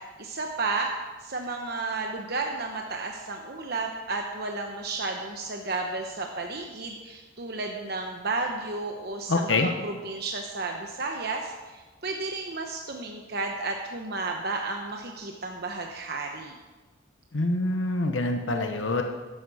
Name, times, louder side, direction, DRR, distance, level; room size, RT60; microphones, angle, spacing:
voice 1, 0.2-0.9 1.2-16.6, right 3 dB, 50° right, 2 dB, 1.0 m, -32 dB
voice 2, 9.3-9.7 17.3-19.0, left 2 dB, 65° left, 4 dB, 1.0 m, -25 dB
14.0 x 11.0 x 4.9 m, 1.3 s
head